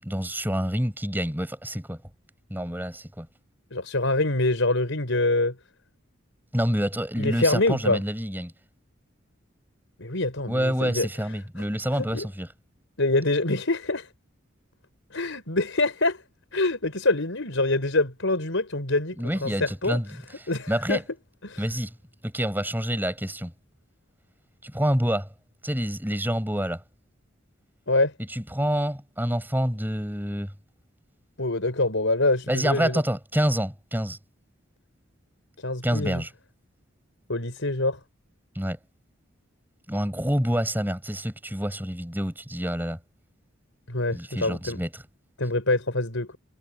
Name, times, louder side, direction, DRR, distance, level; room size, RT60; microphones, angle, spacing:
voice 1, 0.0-2.0 2.5-3.3 6.5-8.5 10.5-12.5 19.2-20.1 20.7-21.0 21.6-21.9 22.2-23.5 24.6-25.3 25.6-26.8 28.3-30.5 32.5-34.2 35.8-36.3 38.5-38.8 39.9-43.0 44.1-44.9, equal, 10° right, 7.6 m, -27 dB
voice 2, 3.7-5.5 7.2-8.0 10.0-11.1 12.0-12.2 13.0-14.1 15.1-16.2 16.5-20.0 20.5-21.0 21.4-21.6 27.9-28.1 31.4-33.0 35.6-36.2 37.3-38.0 43.9-44.8 45.4-46.4, left 2 dB, 75° left, 4.9 m, -25 dB
head